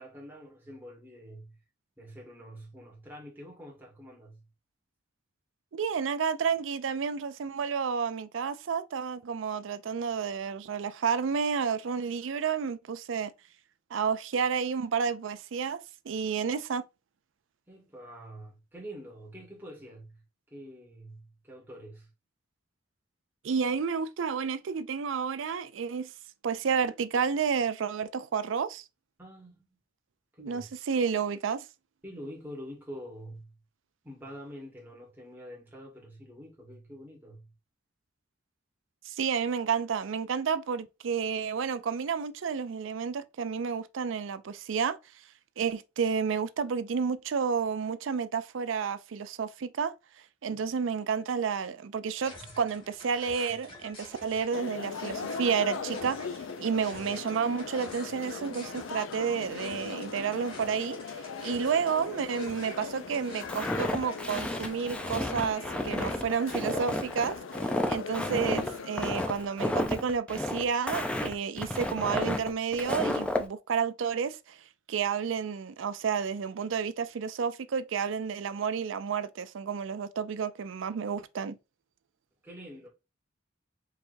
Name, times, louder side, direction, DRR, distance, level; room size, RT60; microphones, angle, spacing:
voice 1, 0.0-1.6 2.0-4.4 17.7-20.2 20.5-22.1 29.2-29.7 30.3-30.6 32.0-33.5 34.0-37.5 50.5-50.8 82.4-82.9, equal, 10° right, 1.9 m, -46 dB
voice 2, 5.7-13.3 13.9-15.8 16.1-16.8 23.4-26.1 26.4-28.8 30.4-31.7 39.1-45.0 45.6-49.9 50.4-67.4 67.9-74.6 74.9-81.6, right 6 dB, 75° right, 0.4 m, -31 dB
sound 1, 52.2-65.1, left 2 dB, 30° left, 2.0 m, -49 dB
sound 2, 54.5-69.7, left 5 dB, 80° left, 0.5 m, -40 dB
Walk footsteps, 63.5-73.4, left 1 dB, 5° left, 0.5 m, -31 dB
4.8 x 3.4 x 2.6 m
head